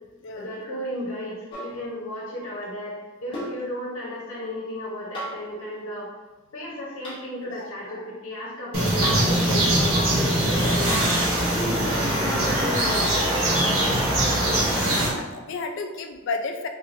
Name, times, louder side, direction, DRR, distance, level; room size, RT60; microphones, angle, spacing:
voice 1, 0.3-6.1 6.5-11.0 11.3-13.3, left 1 dB, 80° left, -5 dB, 0.8 m, -34 dB
sound 1, 1.5-1.8 3.3-3.6 5.1-5.5 7.0-7.2 9.0-9.4 10.9-11.2 12.9-13.0, right 1 dB, 25° left, 0.9 m, -33 dB
sound 2, 8.7-15.1, right 1 dB, 85° right, 1.1 m, -22 dB
voice 2, 14.7-16.7, left 3 dB, 60° left, 6 dB, 0.4 m, -33 dB
3.3 x 3.2 x 2.5 m, 1.2 s
head